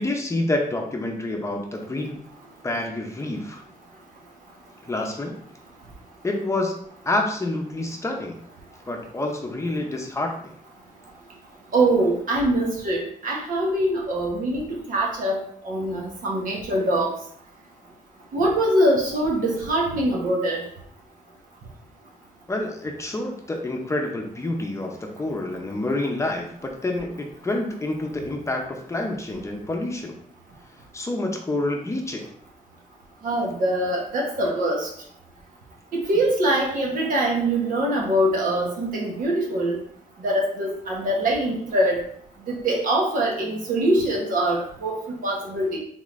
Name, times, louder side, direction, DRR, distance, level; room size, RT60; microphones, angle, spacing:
voice 1, 0.0-2.2 2.6-3.6 4.8-5.3 6.2-6.8 7.0-8.4 8.9-10.5 22.5-30.2 30.9-32.3, left 2 dB, 20° left, 1 dB, 0.6 m, -28 dB
voice 2, 11.7-14.6 14.9-15.4 15.6-17.1 18.3-20.6 33.2-34.9 35.9-39.8 40.2-42.0 42.5-45.8, right 1 dB, 75° right, -2 dB, 1.3 m, -23 dB
3.8 x 3.6 x 3.1 m, 0.64 s
wide cardioid pair, 140°, 14 cm